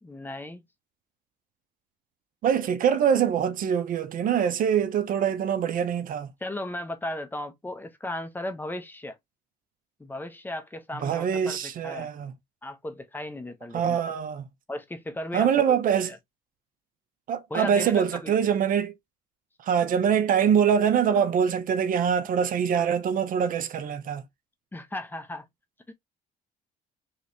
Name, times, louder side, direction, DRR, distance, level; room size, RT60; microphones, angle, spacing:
voice 1, 0.0-0.6 6.4-9.2 10.0-12.1 12.6-14.0 14.7-15.8 16.0-16.2 17.5-18.3 24.7-25.5 25.9-26.0, left 1 dB, 10° left, 0.8 m, -36 dB
voice 2, 2.4-6.3 10.9-12.3 13.7-14.5 15.3-16.1 17.3-18.9 19.6-24.2, right 8 dB, 55° right, 0.6 m, -24 dB
3.2 x 3.0 x 2.7 m
cardioid pair, 110°, 17 cm